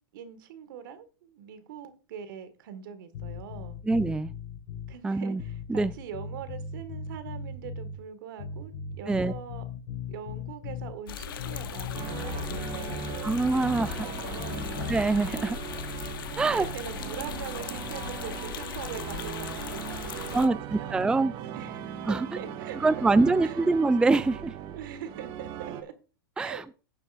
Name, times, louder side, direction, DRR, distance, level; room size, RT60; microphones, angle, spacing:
voice 1, 0.1-3.8 4.9-9.7 10.1-13.7 14.0-14.6 15.4-15.7 16.5-21.0 21.5-23.0 23.4-23.6 24.7-25.9 26.4-26.6, right 8 dB, 70° right, 1.7 m, -42 dB
sound 1, 3.1-4.9 5.4-8.0 8.4-11.0 11.4-13.9 14.4-15.0, left 6 dB, 60° left, 4.2 m, -38 dB
voice 2, 3.9-4.3 5.0-5.4 5.7-5.9 9.1-9.3 13.2-14.0 14.9-15.6 16.4-16.7 20.3-21.3 22.1-22.3 22.8-24.5 26.4-26.6, right 3 dB, 5° right, 0.4 m, -24 dB
sound 2, 11.1-20.5, left 8 dB, 75° left, 0.9 m, -38 dB
sound 3, 11.9-25.8, right 10 dB, 45° right, 1.2 m, -39 dB
16.5 x 7.0 x 2.5 m
hypercardioid pair, 105°, 11 cm